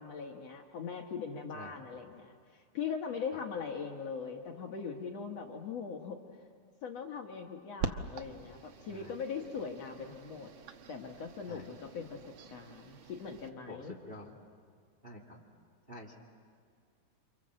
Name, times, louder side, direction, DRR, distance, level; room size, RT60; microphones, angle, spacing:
voice 1, 0.0-6.2 6.8-10.5 10.9-12.2 12.5-13.9, left 6 dB, 60° left, 2 dB, 2.2 m, -40 dB
sound 1, 7.8-13.5, right 5 dB, 80° right, 1.1 m, -44 dB
voice 2, 13.7-14.3 15.0-15.4 15.9-16.1, left 1 dB, 20° right, 0 dB, 1.9 m, -47 dB
29.0 x 26.5 x 7.6 m, 2.1 s
omnidirectional pair, 3.9 m